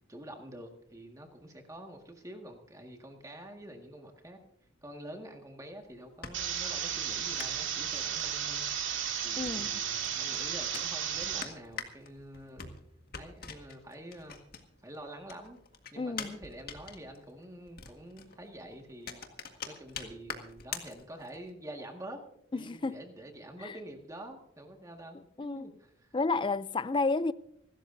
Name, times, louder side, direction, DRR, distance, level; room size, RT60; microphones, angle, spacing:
voice 1, 0.1-4.4 4.8-8.6 9.2-12.7 13.2-14.4 14.8-15.6 15.9-19.2 19.7-22.2 22.5-26.1, right 1 dB, 15° right, 1.8 m, -47 dB
sound 1, 5.8-15.0 15.2-21.5, left 6 dB, 50° left, 1.8 m, -45 dB
sound 2, 6.3-11.4, right 8 dB, 70° right, 2.3 m, -34 dB
voice 2, 9.4-9.8 16.0-16.4 22.5-23.0 23.6-23.8 25.4-25.7 26.1-27.3, left 3 dB, 25° left, 0.4 m, -31 dB
26.0 x 13.0 x 2.7 m
head